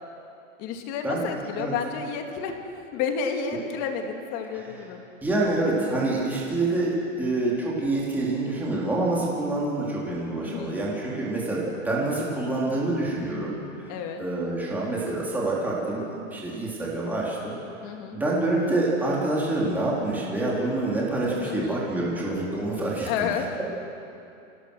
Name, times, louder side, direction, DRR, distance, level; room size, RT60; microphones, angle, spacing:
voice 1, 0.6-2.6 2.9-5.0 10.4-10.8 13.9-14.2 17.8-18.2 21.4-21.9 23.0-23.5, left 6 dB, 35° left, 4 dB, 2.3 m, -31 dB
voice 2, 5.2-13.5 13.8-13.9 14.2-16.1 16.3-17.5 18.1-23.1, right 2 dB, 5° right, -6 dB, 3.4 m, -26 dB
27.5 x 17.5 x 6.4 m, 2.7 s
supercardioid pair, 155°, 38 cm